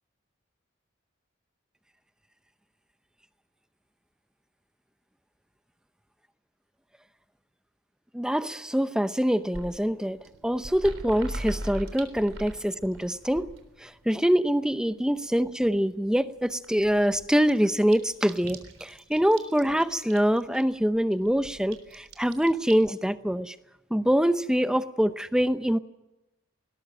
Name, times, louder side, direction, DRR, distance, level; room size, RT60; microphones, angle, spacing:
voice 1, 8.1-10.2 10.4-13.5 13.8-23.6 23.9-25.8, equal, 5° right, 12 dB, 0.7 m, -25 dB
sound 1, 9.4-14.6 14.9-15.5 15.8-15.9 16.2-16.3 16.5-22.7, right 1 dB, 80° right, 3.7 m, -41 dB
20.5 x 19.0 x 7.7 m, 0.95 s
head